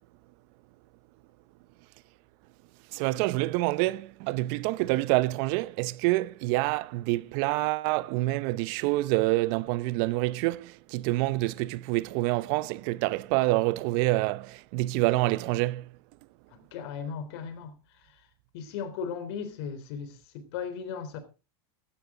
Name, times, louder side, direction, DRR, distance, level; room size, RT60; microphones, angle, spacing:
voice 1, 2.9-15.9, right 19 dB, 55° right, 0.7 m, -27 dB
voice 2, 16.5-18.3 18.5-21.2, left 6 dB, 65° left, 3.7 m, -37 dB
16.5 x 12.0 x 3.8 m
supercardioid pair, 115°, 14 cm